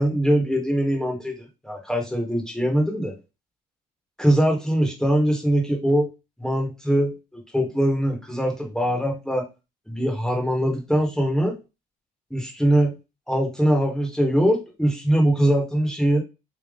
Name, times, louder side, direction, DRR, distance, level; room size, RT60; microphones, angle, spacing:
voice 1, 0.0-3.1 4.2-6.1 6.4-7.1 7.5-9.5 9.9-11.6 12.3-12.9 13.3-16.2, right 1 dB, 5° left, 0 dB, 1.6 m, -22 dB
3.6 x 3.1 x 3.7 m, 0.27 s
cardioid pair, 110°, 17 cm